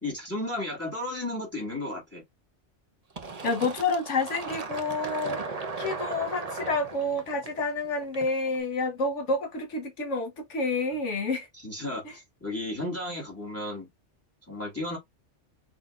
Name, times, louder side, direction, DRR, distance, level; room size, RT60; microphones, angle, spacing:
voice 1, 0.0-2.2 11.6-13.9 14.5-15.0, left 1 dB, 10° left, 1.9 m, -34 dB
Fill (with liquid), 3.2-8.6, right 4 dB, 35° right, 0.9 m, -37 dB
voice 2, 3.4-5.4 5.8-11.5 12.0-12.1, left 3 dB, 80° left, 1.4 m, -29 dB
6.1 x 2.8 x 2.5 m
omnidirectional pair, 1.2 m